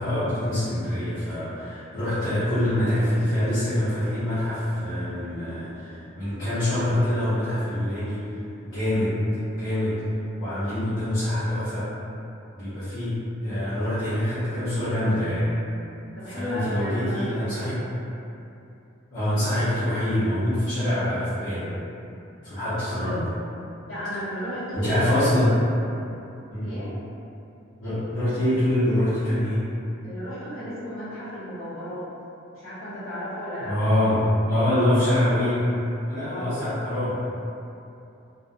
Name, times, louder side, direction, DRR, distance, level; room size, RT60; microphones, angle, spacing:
voice 1, 0.0-8.2 8.6-9.2 9.6-10.0 10.4-11.9 12.5-15.5 16.3-17.8 19.1-21.7 22.4-23.3 24.7-25.5 26.5-26.8 27.8-29.6 33.7-35.7 36.1-37.2, left 1 dB, 70° left, -16 dB, 0.9 m, -25 dB
voice 2, 16.1-17.7 23.8-25.3 26.6-26.9 30.0-32.0 32.5-33.7 36.2-36.6, equal, 85° left, -14 dB, 1.3 m, -33 dB
2.5 x 2.2 x 2.6 m, 2.8 s
head